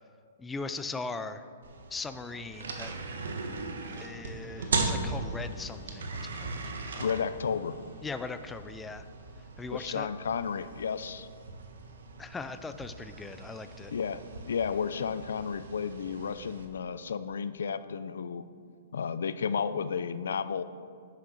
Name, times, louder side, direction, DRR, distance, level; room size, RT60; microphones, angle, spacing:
voice 1, 0.4-1.4 1.9-3.0 3.9-6.0 6.3-6.6 6.9-7.2 8.0-9.0 9.6-10.1 12.2-13.9, left 3 dB, 10° left, 10 dB, 0.4 m, -39 dB
sound 1, 1.6-16.7, right 3 dB, 80° right, 1.5 m, -38 dB
sound 2, 4.6-9.5, left 1 dB, 55° left, 1.8 m, -54 dB
voice 2, 7.0-7.8 9.7-11.3 13.9-14.2 14.5-18.5 18.9-20.6, left 6 dB, 80° left, 14 dB, 0.5 m, -32 dB
9.9 x 6.7 x 6.3 m, 2.3 s
hypercardioid pair, 155°, 0 cm